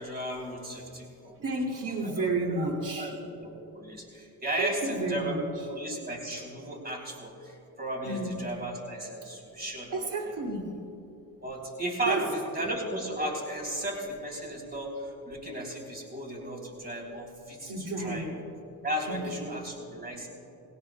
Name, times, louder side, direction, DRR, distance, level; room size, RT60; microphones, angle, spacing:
voice 1, 0.0-1.4 2.0-5.4 5.7-10.1 11.4-18.3 18.8-20.3, right 1 dB, 25° right, -1 dB, 3.4 m, -35 dB
voice 2, 1.3-3.2 4.6-5.5 8.0-8.5 9.9-10.8 12.1-12.3 12.6-12.7 17.6-18.4 19.1-19.5, right 2 dB, 55° right, 0 dB, 2.5 m, -32 dB
20.5 x 18.0 x 2.3 m, 2.8 s
cardioid pair, 65°, 38 cm